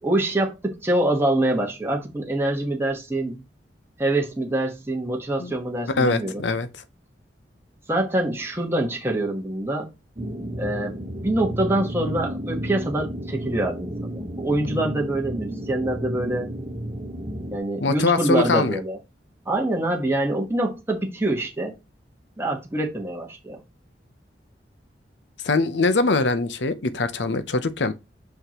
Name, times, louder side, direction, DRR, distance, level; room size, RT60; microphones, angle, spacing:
voice 1, 0.0-3.4 4.0-6.4 7.9-9.9 10.6-10.9 11.2-16.5 17.5-19.0 19.5-21.7 22.4-23.6, right 1 dB, 15° right, 1.3 m, -25 dB
voice 2, 6.0-6.7 17.8-18.8 25.4-27.9, left 3 dB, 85° left, 0.7 m, -22 dB
sound 1, 10.2-17.6, right 1 dB, 30° right, 1.0 m, -32 dB
5.7 x 5.6 x 3.0 m
head